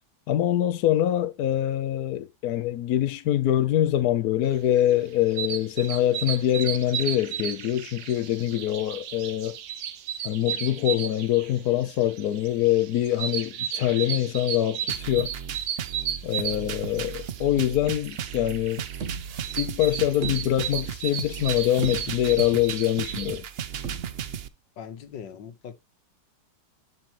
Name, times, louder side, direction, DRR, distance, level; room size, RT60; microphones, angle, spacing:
voice 1, 0.3-9.6 10.2-15.3 16.2-18.8 19.6-23.5, left 12 dB, 65° left, 1.1 m, -24 dB
sound 1, 4.7-23.4, right 9 dB, 85° right, 1.6 m, -35 dB
sound 2, 14.9-24.5, right 8 dB, 70° right, 0.6 m, -36 dB
sound 3, 19.0-19.8 20.2-21.0 21.4-21.5 21.8-22.6 23.8-24.5, right 5 dB, 50° right, 1.4 m, -37 dB
voice 2, 24.8-25.7, left 8 dB, 85° left, 1.9 m, -40 dB
12.0 x 6.4 x 3.0 m
omnidirectional pair, 1.9 m